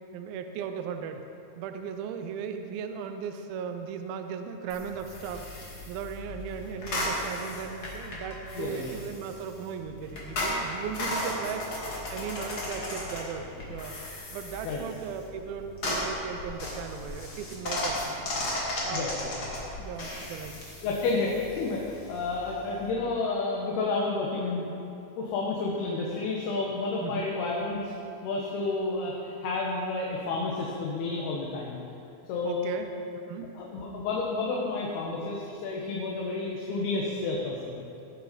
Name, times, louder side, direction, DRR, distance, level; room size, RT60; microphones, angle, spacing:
voice 1, 0.1-1.2 1.6-11.8 12.1-14.0 14.3-18.2 18.8-19.1 19.8-20.6 20.9-21.0 27.0-27.3 32.4-32.9 33.3-33.6, right 7 dB, 90° right, 7 dB, 2.1 m, -37 dB
sound 1, 4.7-22.9, left 1 dB, 40° left, 2.2 m, -36 dB
voice 2, 8.6-8.9 14.6-14.8 18.9-19.3 20.8-24.7 25.2-27.9 28.2-31.8 32.3-32.7 33.6-37.8, left 3 dB, 70° left, -3 dB, 2.9 m, -30 dB
19.0 x 7.8 x 5.2 m, 2.6 s
omnidirectional pair, 5.4 m